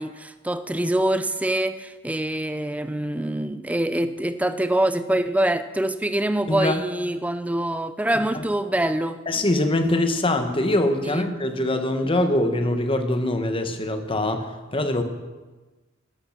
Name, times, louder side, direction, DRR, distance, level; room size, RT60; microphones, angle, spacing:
voice 1, 0.0-9.2 11.1-11.2, right 1 dB, 5° right, 12 dB, 0.5 m, -25 dB
voice 2, 6.5-6.8 8.3-8.4 9.3-14.5 14.7-15.0, left 1 dB, 25° left, 7 dB, 1.1 m, -23 dB
12.5 x 11.5 x 5.9 m, 1.2 s
head